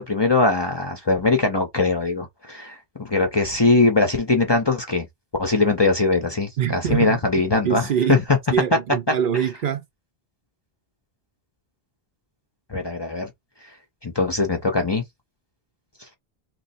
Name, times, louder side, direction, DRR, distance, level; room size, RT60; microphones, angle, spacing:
voice 1, 0.0-5.1 5.4-8.2 12.7-13.3 14.0-15.0, left 3 dB, 30° left, 0.5 m, -21 dB
voice 2, 6.6-7.2 7.6-8.2 8.5-9.8, right 9 dB, 60° right, 0.6 m, -24 dB
3.0 x 2.0 x 4.1 m
omnidirectional pair, 1.1 m